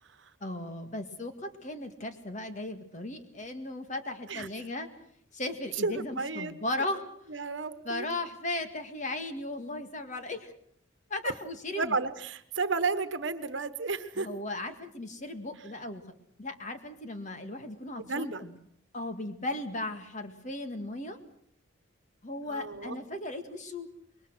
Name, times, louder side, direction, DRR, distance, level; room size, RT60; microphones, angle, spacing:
voice 1, 0.4-4.9 5.3-7.1 7.8-10.5 11.1-12.0 14.2-16.0 16.4-18.6 18.9-21.2 22.2-23.9, left 2 dB, 35° left, 8 dB, 2.0 m, -36 dB
voice 2, 5.8-6.5 7.3-8.1 11.2-11.3 11.8-14.3 18.0-18.4 22.4-23.0, right 4 dB, 65° right, 12 dB, 1.3 m, -32 dB
26.0 x 22.0 x 6.3 m, 0.65 s
head